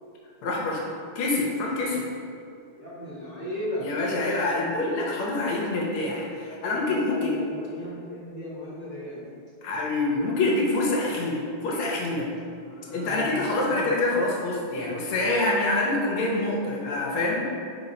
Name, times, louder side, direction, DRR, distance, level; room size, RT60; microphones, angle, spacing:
voice 1, 0.4-0.8 1.1-2.0 3.8-7.4 9.6-12.3 12.9-17.4, left 2 dB, 85° left, -3 dB, 1.5 m, -26 dB
voice 2, 2.7-3.9 6.4-9.2 12.6-14.0, left 1 dB, 60° right, -12 dB, 0.8 m, -37 dB
4.1 x 2.0 x 3.8 m, 2.5 s
omnidirectional pair, 2.4 m